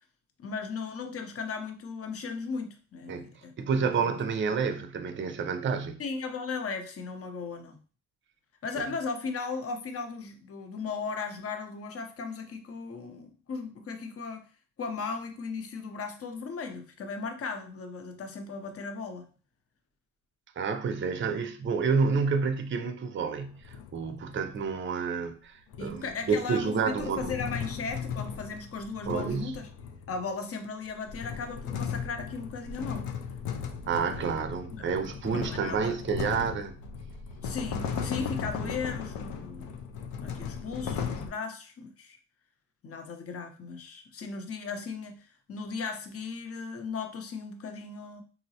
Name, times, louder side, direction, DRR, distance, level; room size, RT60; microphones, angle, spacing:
voice 1, 0.4-4.2 4.7-4.8 6.0-7.8 8.6-14.4 14.8-19.3 25.8-29.7 30.1-33.1 34.7-34.9 35.3-36.0 37.4-39.7 40.2-42.2 42.8-48.2, left 4 dB, 40° left, 0.7 m, -37 dB
voice 2, 3.6-6.0 8.8-8.9 20.6-27.3 29.1-29.6 33.9-36.8 38.6-38.8, right 5 dB, 35° right, 0.5 m, -29 dB
sound 1, 23.4-24.7 25.7-30.3 30.8-41.3, left 6 dB, 85° left, 0.5 m, -37 dB
3.8 x 2.0 x 2.7 m
cardioid pair, 75°, 34 cm